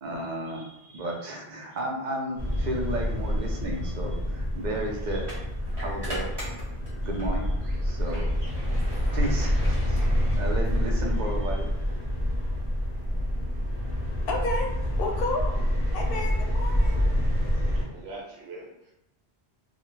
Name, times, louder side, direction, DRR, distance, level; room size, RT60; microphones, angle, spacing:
voice 1, 0.0-5.4 5.8-6.4 7.0-8.4 9.1-11.7, right 1 dB, 55° right, 0 dB, 0.5 m, -33 dB
sound 1, 2.4-17.8, equal, 15° left, 0.6 m, -27 dB
sound 2, 5.2-7.4 7.8-11.0, equal, 25° right, 0.8 m, -41 dB
voice 2, 14.3-14.7 15.0-15.6 15.9-17.0, left 2 dB, 65° left, 2 dB, 0.7 m, -31 dB
voice 3, 17.4-18.9, right 2 dB, 75° right, -4 dB, 1.0 m, -44 dB
2.3 x 2.0 x 3.0 m, 0.82 s
omnidirectional pair, 1.1 m